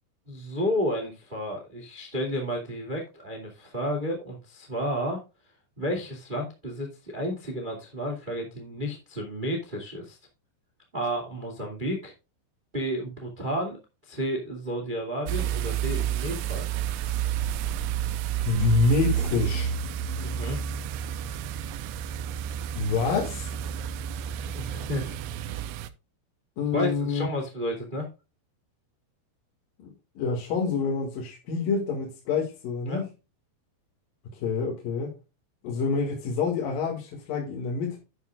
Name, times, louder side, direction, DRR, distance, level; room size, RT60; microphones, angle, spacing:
voice 1, 0.3-5.2 5.8-10.2 10.9-12.1 12.7-13.8 14.0-16.6 20.2-20.6 24.4-25.2 26.7-28.1 32.9-33.0, equal, 20° right, 1.3 m, -31 dB
sound 1, 15.3-25.9, right 10 dB, 85° right, 3.0 m, -30 dB
voice 2, 18.4-19.7 22.8-23.5 26.6-27.3 29.8-29.9 30.1-33.1 34.3-35.1 35.6-38.0, left 4 dB, 55° left, 3.4 m, -27 dB
11.5 x 9.4 x 2.4 m
omnidirectional pair, 5.3 m